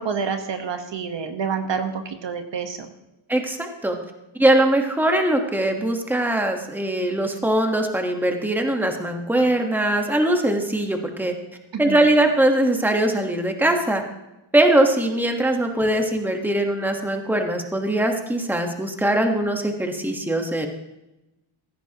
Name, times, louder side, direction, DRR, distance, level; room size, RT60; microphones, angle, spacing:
voice 1, 0.0-2.9 11.7-12.0, right 6 dB, 60° right, 6 dB, 1.4 m, -28 dB
voice 2, 3.3-4.0 4.4-11.3 11.8-14.0 14.5-20.7, right 1 dB, 5° right, 4 dB, 1.3 m, -21 dB
16.5 x 14.0 x 3.0 m, 0.96 s
wide cardioid pair, 155°, 49 cm